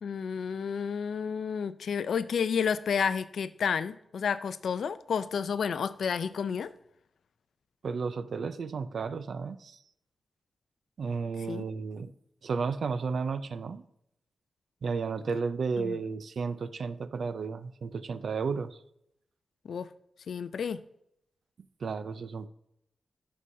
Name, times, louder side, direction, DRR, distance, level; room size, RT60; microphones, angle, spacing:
voice 1, 0.0-6.7 11.5-11.6 15.8-16.0 19.7-19.9 20.3-20.8, left 6 dB, 75° left, 14 dB, 0.4 m, -31 dB
voice 2, 7.8-9.8 11.0-12.1 12.4-13.8 14.8-18.8 21.8-22.5, right 5 dB, 60° right, 13 dB, 0.4 m, -33 dB
11.0 x 6.4 x 2.6 m, 0.76 s
wide cardioid pair, 170°, 0 cm